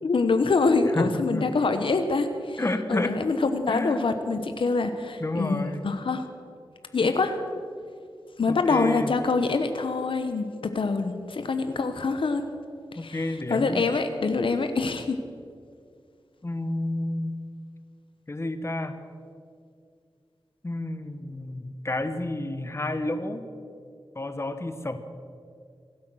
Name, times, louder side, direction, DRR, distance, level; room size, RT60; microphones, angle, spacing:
voice 1, 0.0-2.6 2.9-6.3 6.9-7.4 8.4-12.5 12.9-13.2 13.5-15.2, left 3 dB, 75° left, 8 dB, 1.0 m, -25 dB
voice 2, 0.9-1.5 2.6-3.1 3.7-4.0 5.2-5.8 8.5-9.1 13.0-13.9 16.4-17.3 18.3-19.0 20.6-23.4 24.1-25.0, left 2 dB, 30° left, 9 dB, 1.2 m, -30 dB
25.0 x 8.5 x 6.3 m, 2.3 s
wide cardioid pair, 75°, 9 cm